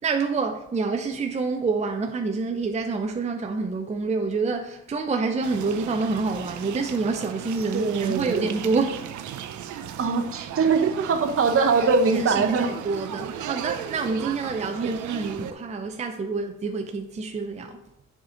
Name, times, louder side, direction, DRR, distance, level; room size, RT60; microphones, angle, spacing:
voice 1, 0.0-9.0 12.1-17.8, right 4 dB, 25° right, 0.6 m, -27 dB
sound 1, 5.4-15.5, right 9 dB, 75° right, 0.6 m, -36 dB
voice 2, 7.7-8.5 10.0-12.7 14.8-14.9, right 4 dB, 45° right, 1.0 m, -22 dB
7.8 x 5.0 x 3.9 m
cardioid pair, 90°, 30 cm